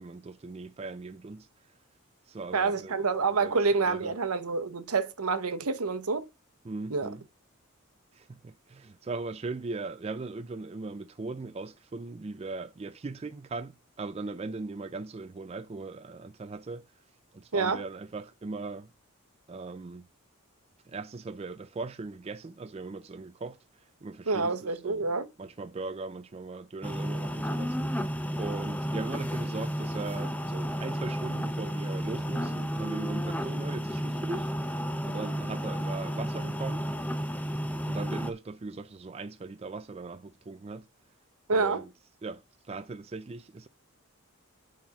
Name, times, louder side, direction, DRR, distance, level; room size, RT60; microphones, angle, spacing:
voice 1, 0.0-1.5 2.3-4.1 6.6-7.2 8.1-16.8 17.3-18.9 19.5-20.1 20.9-23.6 24.0-25.1 25.4-28.0 28.4-34.5 35.0-36.9 37.9-40.9 41.5-41.9 42.2-42.4 42.7-43.7, right 3 dB, 30° right, 0.3 m, -39 dB
voice 2, 2.5-6.2 6.9-7.1 17.5-17.8 24.3-25.3 41.5-41.8, right 4 dB, 85° right, 1.0 m, -27 dB
sound 1, 26.8-38.3, equal, 5° left, 0.6 m, -32 dB
5.7 x 4.3 x 5.9 m
head